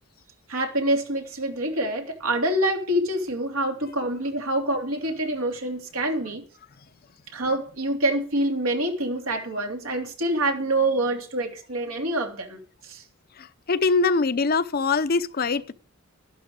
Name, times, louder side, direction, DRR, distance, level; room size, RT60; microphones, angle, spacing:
voice 1, 0.5-6.4 7.3-12.6 12.9-13.0, right 1 dB, 85° right, 3.0 m, -26 dB
voice 2, 13.4-15.7, left 4 dB, 45° left, 0.6 m, -23 dB
12.5 x 11.5 x 4.8 m
head